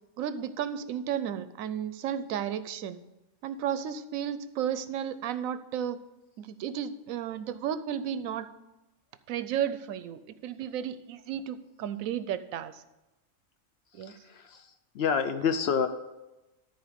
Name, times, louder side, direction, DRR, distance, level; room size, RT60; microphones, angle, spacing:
voice 1, 0.2-3.0 3.4-6.0 6.4-8.5 9.3-12.8 13.9-14.1, right 9 dB, 85° right, 13 dB, 1.0 m, -33 dB
voice 2, 14.0-15.9, left 6 dB, 65° left, 9 dB, 0.7 m, -29 dB
13.0 x 4.6 x 5.0 m, 1.0 s
omnidirectional pair, 1.4 m